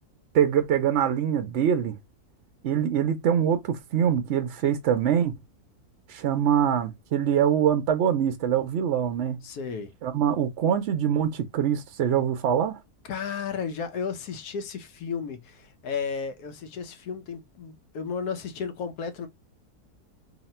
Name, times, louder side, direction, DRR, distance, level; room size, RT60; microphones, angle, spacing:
voice 1, 0.3-2.0 2.6-5.3 6.1-9.4 10.0-12.8, right 9 dB, 65° right, 0.7 m, -24 dB
voice 2, 9.4-9.9 13.1-19.3, left 6 dB, 80° left, 1.3 m, -33 dB
2.9 x 2.8 x 4.1 m
omnidirectional pair, 1.7 m